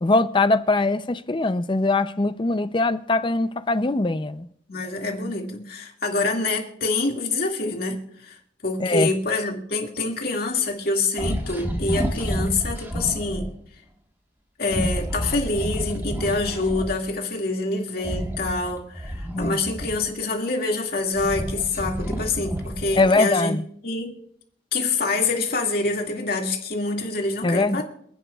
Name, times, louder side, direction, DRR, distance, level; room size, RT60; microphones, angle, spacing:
voice 1, 0.0-4.5 8.8-9.1 19.3-19.6 23.0-23.6 27.4-27.8, left 2 dB, 25° left, 0.5 m, -22 dB
voice 2, 4.7-8.4 8.6-13.5 14.6-24.1 24.7-27.8, left 3 dB, 55° left, 2.1 m, -26 dB
sound 1, 11.2-13.5 14.6-17.0 18.0-20.3 20.9-23.2, equal, 15° right, 1.4 m, -30 dB
28.5 x 10.0 x 2.4 m
head